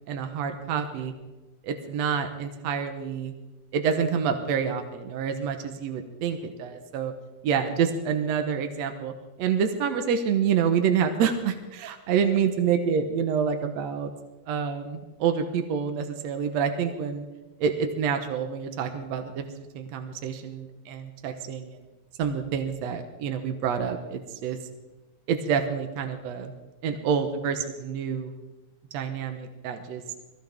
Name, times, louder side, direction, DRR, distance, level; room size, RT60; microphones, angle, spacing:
voice 1, 0.1-1.1 1.6-3.3 3.7-7.1 7.4-9.1 9.4-14.1 14.5-17.3 17.6-21.8 22.2-24.6 25.3-26.5 26.8-28.3 28.9-30.0, right 7 dB, 70° right, 6 dB, 2.2 m, -27 dB
21.0 x 15.5 x 3.6 m, 1.1 s
omnidirectional pair, 3.3 m